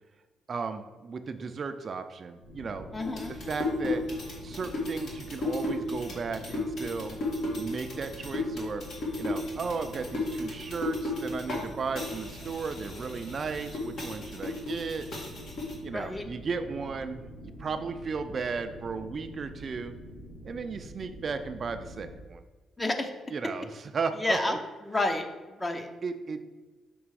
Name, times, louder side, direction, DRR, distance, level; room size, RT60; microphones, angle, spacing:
voice 1, 0.5-2.9 3.3-4.1 4.4-7.2 7.6-8.8 9.2-15.1 15.8-19.9 20.4-22.4 23.3-24.6 26.0-26.4, right 5 dB, 45° right, 8 dB, 0.4 m, -35 dB
sound 1, 2.4-22.2, equal, 85° left, 1.2 m, -46 dB
voice 2, 2.9-3.3 15.9-16.2 22.8-23.1 24.2-24.6 24.8-25.9, left 2 dB, 20° left, 5 dB, 0.7 m, -30 dB
sound 2, 3.0-11.7 12.0-15.8, left 2 dB, 65° left, 1.6 m, -34 dB
6.0 x 3.3 x 4.7 m, 1.3 s
cardioid pair, 90°, 0 cm